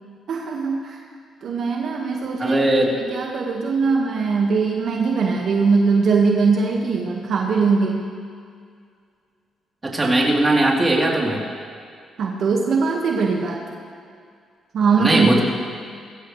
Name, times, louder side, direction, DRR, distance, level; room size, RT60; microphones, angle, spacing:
voice 1, 0.3-1.0 1.4-8.0 12.2-13.6 14.7-15.4, right 4 dB, 65° right, 0 dB, 1.6 m, -21 dB
voice 2, 2.4-2.9 9.8-11.4 15.0-15.4, right 1 dB, 25° right, -3 dB, 3.4 m, -18 dB
21.5 x 15.5 x 3.3 m, 2.2 s
cardioid pair, 75°, 0 cm